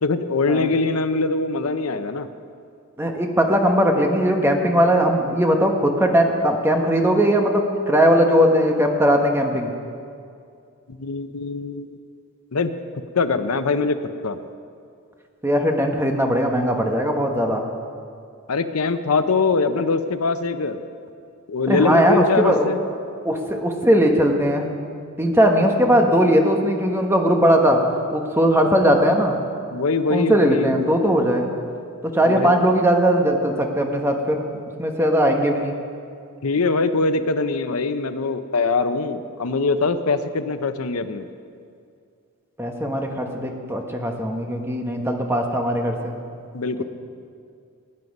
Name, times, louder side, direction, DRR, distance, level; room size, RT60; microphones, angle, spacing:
voice 1, 0.0-2.3 11.0-12.0 12.5-12.7 13.1-14.4 18.5-20.8 21.5-22.8 29.7-30.8 32.2-32.6 36.4-41.3 46.5-46.8, left 4 dB, 80° left, 10 dB, 0.7 m, -22 dB
voice 2, 3.0-9.7 15.4-17.7 21.7-22.7 23.2-24.7 25.2-27.8 28.1-29.4 30.1-31.5 32.0-34.5 34.8-35.8 42.6-46.1, equal, 10° right, 2 dB, 1.2 m, -19 dB
18.5 x 9.4 x 5.4 m, 2.4 s
head